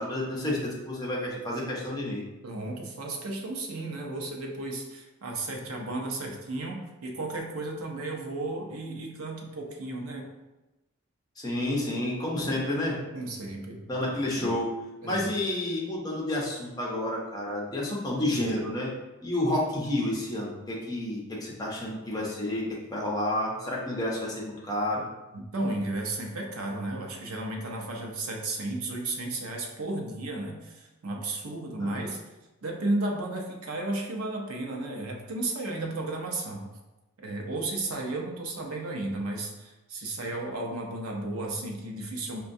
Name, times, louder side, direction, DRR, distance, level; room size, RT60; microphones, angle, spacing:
voice 1, 0.0-2.2 11.4-13.0 13.9-14.7 15.0-18.9 19.2-25.1 31.8-32.0, left 1 dB, 15° left, -4 dB, 0.7 m, -30 dB
voice 2, 2.4-10.3 13.1-14.5 15.0-15.3 25.3-32.2 32.6-36.6 37.2-42.4, right 2 dB, 70° right, 1 dB, 0.6 m, -34 dB
5.5 x 2.3 x 2.6 m, 1.0 s
head